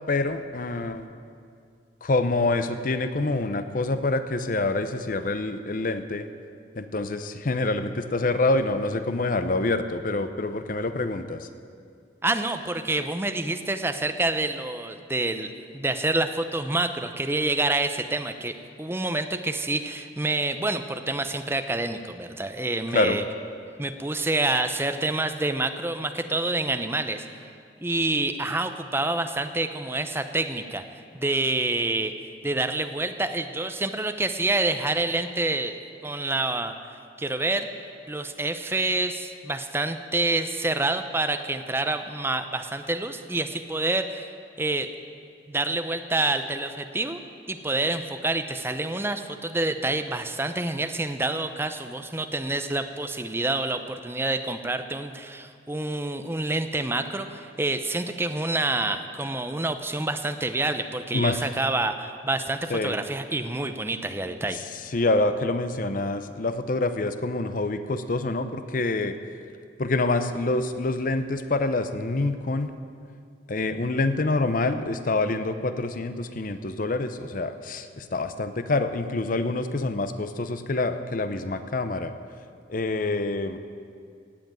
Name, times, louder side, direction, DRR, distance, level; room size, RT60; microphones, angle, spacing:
voice 1, 0.1-1.1 2.0-6.3 6.7-11.5 22.9-23.2 61.1-61.4 62.7-63.0 64.5-64.6 64.9-69.2 69.8-72.8 73.5-82.1 82.7-83.6, left 2 dB, 50° left, 10 dB, 0.7 m, -26 dB
voice 2, 12.2-18.5 18.8-23.2 23.8-27.2 27.8-30.8 31.1-32.1 32.4-35.8 36.0-36.7 37.2-37.7 38.1-44.3 44.6-44.9 45.5-47.2 47.5-64.6, right 2 dB, 15° right, 8 dB, 0.7 m, -27 dB
17.5 x 7.9 x 9.0 m, 2.3 s
head